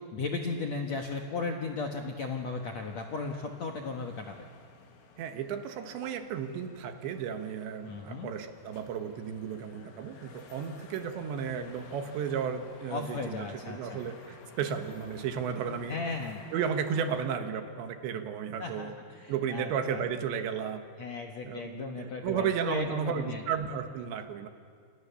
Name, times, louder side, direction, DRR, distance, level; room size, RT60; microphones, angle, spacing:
voice 1, 0.1-4.5 7.8-8.3 12.9-14.0 15.9-16.4 18.6-20.0 21.0-23.4, left 4 dB, 65° left, 2 dB, 1.8 m, -36 dB
sound 1, 2.3-17.2, left 5 dB, 80° left, 4.6 m, -54 dB
voice 2, 5.2-16.0 16.5-18.9 19.3-20.8 21.4-24.5, right 7 dB, 80° right, 7 dB, 3.7 m, -33 dB
28.5 x 28.0 x 7.0 m, 2.1 s
omnidirectional pair, 5.1 m